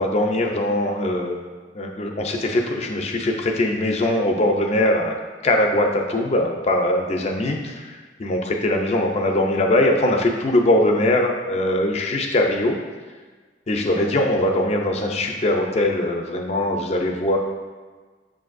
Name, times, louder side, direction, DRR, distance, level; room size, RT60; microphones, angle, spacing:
voice 1, 0.0-1.4 1.7-5.2 5.4-12.7 13.7-17.4, left 1 dB, 35° left, 2 dB, 0.4 m, -21 dB
6.5 x 2.6 x 2.5 m, 1.4 s
head